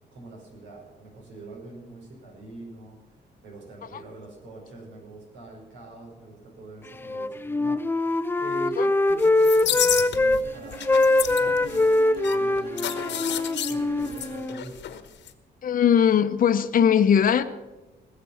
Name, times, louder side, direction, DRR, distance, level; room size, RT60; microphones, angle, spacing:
voice 1, 0.1-8.1 8.4-8.8 9.1-13.3 13.7-14.8, right 3 dB, 85° right, -3 dB, 5.1 m, -44 dB
Wind instrument woodwind instrument, 7.0-10.4 10.7-14.6, left 2 dB, 10° left, 0.4 m, -23 dB
sound 1, 9.2-10.4 10.7-15.0 15.3-15.4, left 11 dB, 75° left, 1.2 m, -30 dB
Bowed string instrument, 10.4-14.7, right 5 dB, 50° right, 2.5 m, -43 dB
voice 2, 15.6-17.4, left 8 dB, 50° left, 9 dB, 0.7 m, -19 dB
19.5 x 6.9 x 7.1 m, 1.1 s
cardioid pair, 100°, 18 cm